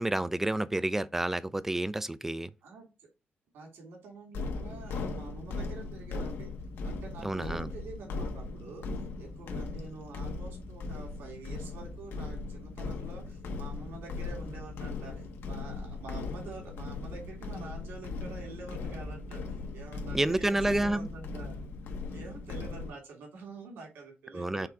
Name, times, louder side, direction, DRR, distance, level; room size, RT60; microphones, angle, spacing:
voice 1, 0.0-2.5 7.2-7.7 20.1-21.1 24.3-24.7, right 1 dB, 10° right, 0.4 m, -29 dB
voice 2, 2.6-3.1 3.5-6.5 6.8-21.6 22.1-24.7, right 3 dB, 90° right, 3.0 m, -47 dB
sound 1, 4.3-22.9, left 3 dB, 80° left, 1.3 m, -38 dB
5.9 x 3.7 x 4.6 m
cardioid pair, 135°, 4 cm